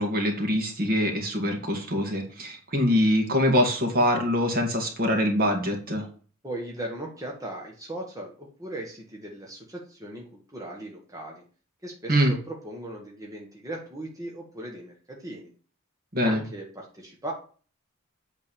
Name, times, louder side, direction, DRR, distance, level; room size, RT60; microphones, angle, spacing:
voice 1, 0.0-6.0 12.1-12.3 16.1-16.4, equal, 45° right, 3 dB, 2.1 m, -24 dB
voice 2, 6.4-11.4 11.8-15.5 16.2-17.3, right 1 dB, 15° right, -1 dB, 1.5 m, -38 dB
8.8 x 4.0 x 6.9 m, 0.41 s
head